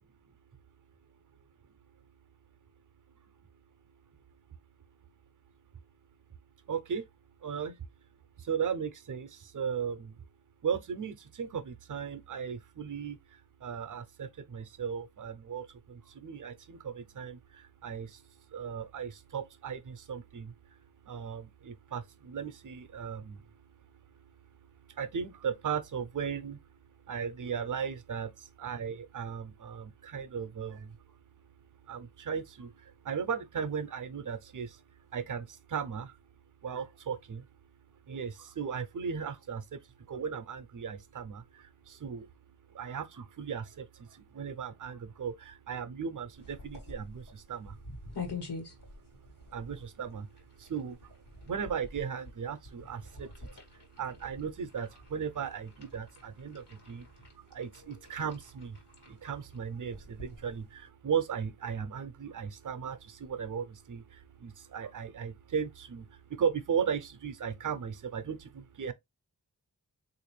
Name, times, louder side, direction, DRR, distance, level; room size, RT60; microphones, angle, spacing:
voice 1, 6.7-7.0 7.4-7.8 8.4-10.2 10.6-18.2 18.5-20.5 21.0-23.5 24.9-26.6 27.1-31.0 31.9-34.8 35.1-36.2 36.6-37.5 38.1-42.3 42.7-47.8 49.5-50.3 50.6-51.1 51.4-57.1 57.3-68.9, right 7 dB, 50° right, 0.5 m, -37 dB
sound 1, 46.4-60.9, left 3 dB, 75° left, 1.4 m, -47 dB
3.5 x 2.5 x 3.1 m
wide cardioid pair, 90°, 41 cm